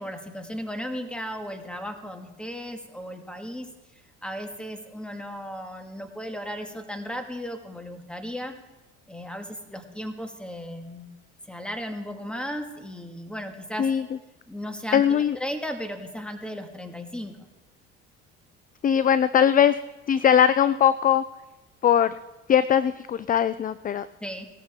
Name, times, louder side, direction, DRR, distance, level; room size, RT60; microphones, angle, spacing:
voice 1, 0.0-3.7 4.2-8.5 9.1-11.1 11.5-13.9 14.5-17.5 24.2-24.5, equal, 5° left, 5 dB, 1.9 m, -35 dB
voice 2, 14.9-15.4 18.8-19.8 20.1-21.2 21.8-22.2 22.5-24.1, left 9 dB, 30° left, 15 dB, 0.4 m, -20 dB
18.0 x 13.5 x 3.7 m, 1.1 s
supercardioid pair, 80°, 29 cm